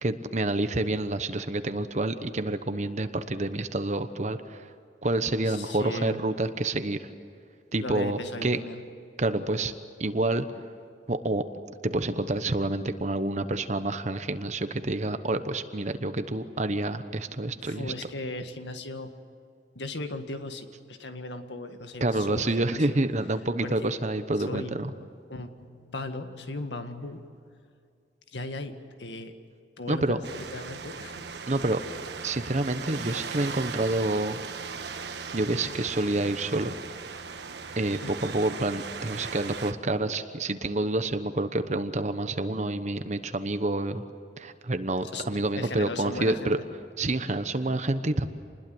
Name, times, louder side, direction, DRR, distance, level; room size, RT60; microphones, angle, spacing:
voice 1, 0.0-4.6 5.0-7.1 7.7-8.6 9.2-9.7 10.0-10.4 11.1-11.4 11.8-17.9 22.0-24.9 29.9-30.2 31.5-31.8 32.2-34.4 35.3-36.7 37.8-44.0 44.4-46.6 47.0-48.3, right 2 dB, 40° right, 10 dB, 1.0 m, -28 dB
voice 2, 5.4-6.2 7.8-8.8 17.6-19.1 19.8-23.0 23.6-23.9 24.4-24.8 25.3-27.6 28.3-29.3 29.8-31.2 38.0-38.2 45.0-46.6, left 2 dB, 90° left, 7 dB, 1.9 m, -37 dB
sound 1, 30.2-39.7, right 5 dB, 75° right, 1.4 m, -38 dB
27.5 x 21.0 x 7.9 m, 2.4 s
head